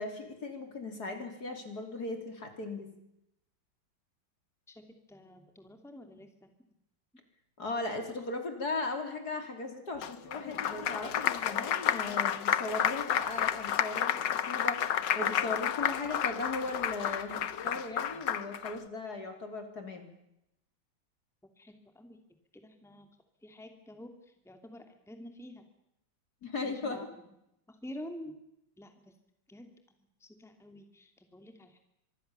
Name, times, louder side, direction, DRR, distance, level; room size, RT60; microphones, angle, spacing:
voice 1, 0.0-2.9 7.6-20.1 26.4-27.1, left 3 dB, 50° left, 6 dB, 3.9 m, -38 dB
voice 2, 4.7-6.5 21.6-22.2 22.5-23.1 23.4-25.6 26.6-27.2 27.7-28.4 28.8-29.1 29.5-29.7 30.2-31.8, left 1 dB, ahead, 6 dB, 2.7 m, -48 dB
Applause, 10.0-18.7, left 9 dB, 65° left, 1.7 m, -31 dB
26.0 x 22.5 x 7.0 m, 0.81 s
omnidirectional pair, 2.1 m